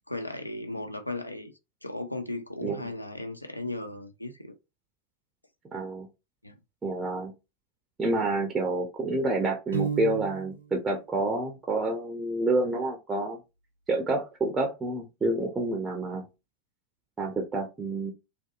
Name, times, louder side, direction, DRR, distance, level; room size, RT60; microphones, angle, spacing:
voice 1, 0.1-1.5 1.8-4.5 6.4-6.6, left 2 dB, 85° left, 0.3 m, -36 dB
voice 2, 5.7-6.1 6.8-7.3 8.0-13.4 13.9-16.3 17.2-18.1, right 2 dB, 15° right, 0.5 m, -28 dB
Piano, 9.7-10.7, right 6 dB, 75° right, 0.5 m, -32 dB
2.6 x 2.2 x 2.3 m
figure-of-eight pair, 90°, 0 cm